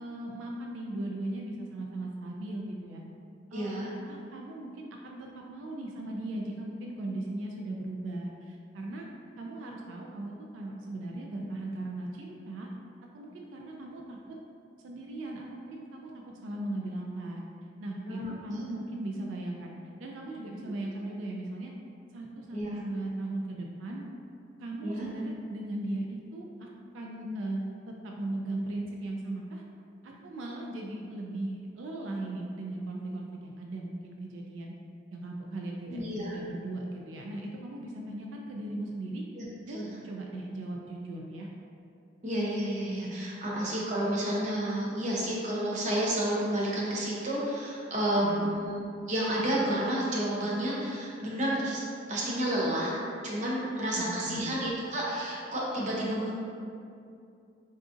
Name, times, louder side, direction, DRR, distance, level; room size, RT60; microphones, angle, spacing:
voice 1, 0.0-3.0 3.5-3.7 4.1-9.1 9.4-12.7 13.1-14.2 14.8-17.4 17.8-19.7 20.0-21.7 22.1-24.1 24.6-26.7 26.9-29.6 30.0-34.7 35.1-39.2 39.7-41.5 48.1-48.5 53.9-54.5, right 2 dB, 90° right, -1 dB, 0.3 m, -38 dB
voice 2, 3.5-3.9 18.1-18.6 22.5-22.7 24.8-25.1 35.9-36.3 39.3-39.9 42.2-48.8 49.1-52.9 53.2-56.3, right 1 dB, 40° right, -5 dB, 0.6 m, -30 dB
3.8 x 2.4 x 2.5 m, 2.5 s
head